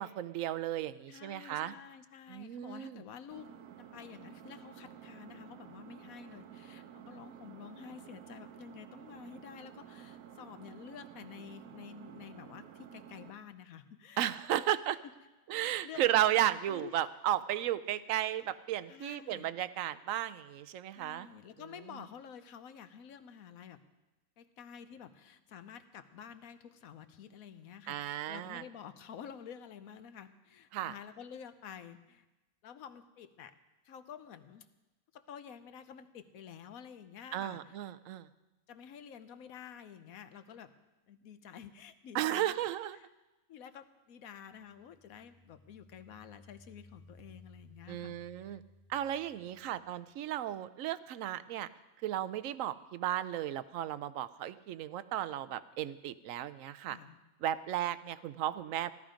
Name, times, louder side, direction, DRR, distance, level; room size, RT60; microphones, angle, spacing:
voice 1, 0.0-1.7 2.3-3.0 14.2-15.0 15.5-21.3 27.9-28.6 30.7-30.9 37.3-38.3 42.1-43.0 47.9-48.6 48.9-51.7 52.0-57.0 57.4-58.9, right 12 dB, 70° right, 15 dB, 1.0 m, -34 dB
voice 2, 1.1-3.5 3.8-14.6 15.5-16.0 16.7-17.0 17.9-18.0 18.9-19.5 21.0-23.8 24.4-32.3 32.6-33.5 33.8-34.7 35.1-37.8 38.7-40.7 41.1-42.6 42.9-43.1 43.5-48.6 56.9-57.2, left 8 dB, 75° left, 11 dB, 1.3 m, -50 dB
Engine, 3.3-13.3, right 10 dB, 85° right, 1.3 m, -52 dB
sound 1, 44.5-50.2, left 2 dB, 15° right, 1.3 m, -60 dB
16.5 x 13.0 x 5.1 m, 1.1 s
omnidirectional pair, 1.5 m